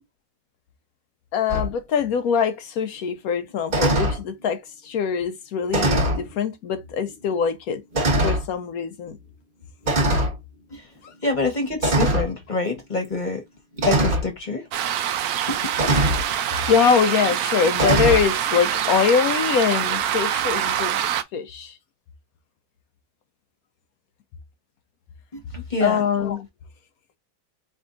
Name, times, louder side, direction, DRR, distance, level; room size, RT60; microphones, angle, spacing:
voice 1, 1.3-4.6 4.8-7.8 8.2-9.2 16.5-21.0 21.3-21.7 25.8-26.4, left 6 dB, 75° left, 0.8 m, -23 dB
sound 1, 1.5-1.7 3.7-4.2 5.7-6.2 7.1-7.2 7.9-8.5 9.9-10.4 11.8-12.3 13.8-14.3 15.8-16.2 17.7-18.2, right 1 dB, 30° right, 1.2 m, -21 dB
voice 2, 11.2-13.4 13.8-14.6 15.5-15.6 25.3-26.0, left 3 dB, 30° left, 0.9 m, -26 dB
sound 2, 14.7-21.2, right 10 dB, 75° right, 0.8 m, -25 dB
4.4 x 3.4 x 2.4 m
omnidirectional pair, 2.1 m